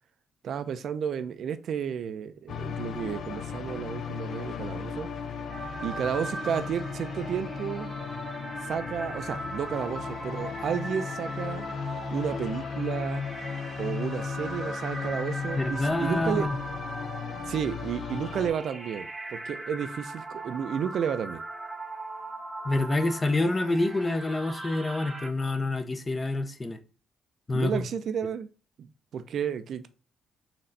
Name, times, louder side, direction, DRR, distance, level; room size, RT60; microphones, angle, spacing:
voice 1, 0.4-5.1 5.8-7.9 8.6-11.6 12.1-13.2 13.8-16.5 17.5-21.4 27.5-28.5 28.8-29.9, right 8 dB, 65° right, 0.5 m, -32 dB
sound 1, 2.5-18.5, left 6 dB, 65° left, 0.6 m, -36 dB
sound 2, 5.5-25.3, right 2 dB, 25° right, 0.8 m, -40 dB
voice 2, 15.6-16.6 22.6-26.8 27.5-27.9, left 2 dB, 25° left, 0.6 m, -27 dB
4.3 x 3.1 x 3.9 m
cardioid pair, 90°, 0 cm